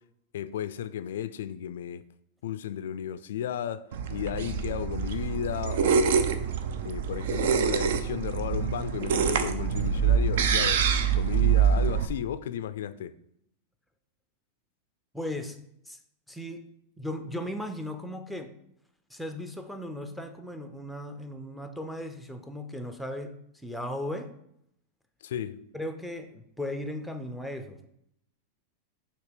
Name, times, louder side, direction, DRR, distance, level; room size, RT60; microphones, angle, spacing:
voice 1, 0.3-2.0 2.4-3.8 4.1-6.3 6.8-10.8 11.1-13.1 25.2-25.6, left 10 dB, 85° left, 0.3 m, -34 dB
sound 1, 3.9-12.1, right 7 dB, 70° right, 0.5 m, -25 dB
voice 2, 15.1-15.6 15.9-16.0 16.3-16.6 17.0-18.6 19.1-24.3 25.7-27.9, left 1 dB, ahead, 0.4 m, -37 dB
6.6 x 2.9 x 5.1 m
supercardioid pair, 160°, 0 cm